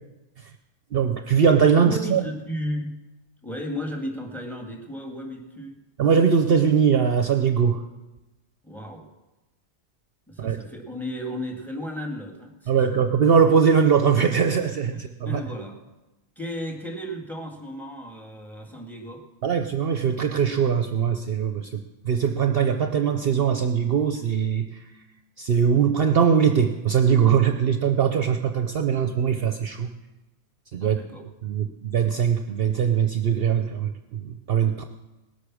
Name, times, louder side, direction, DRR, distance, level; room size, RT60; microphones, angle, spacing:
voice 1, 0.9-2.2 6.0-7.8 10.4-10.6 12.7-15.4 19.4-24.8 25.4-29.9 30.7-31.0 31.4-34.8, right 7 dB, 55° right, 6 dB, 0.9 m, -21 dB
voice 2, 1.8-2.9 3.4-5.8 8.6-9.0 10.3-13.0 15.2-15.8 16.4-19.2 30.8-31.3, equal, ahead, 2 dB, 2.2 m, -34 dB
19.0 x 8.4 x 6.2 m, 1.0 s
omnidirectional pair, 1.2 m